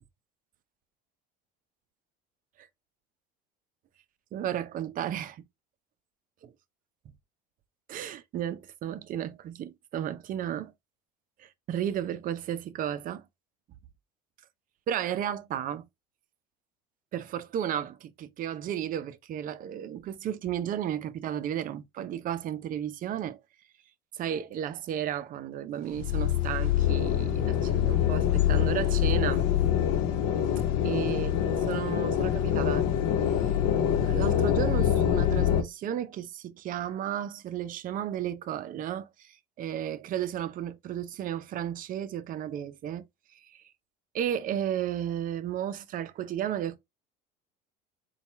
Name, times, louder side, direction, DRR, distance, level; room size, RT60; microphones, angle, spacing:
voice 1, 4.3-5.4 6.4-6.5 7.9-10.7 11.4-13.2 14.9-15.9 17.1-23.4 24.1-29.5 30.8-32.9 33.4-33.5 34.0-43.1 43.4-43.6 44.1-46.8, right 10 dB, 45° right, 0.5 m, -33 dB
sound 1, 25.9-35.6, left 10 dB, 70° left, 0.9 m, -25 dB
4.2 x 2.3 x 3.2 m
supercardioid pair, 95°, 20 cm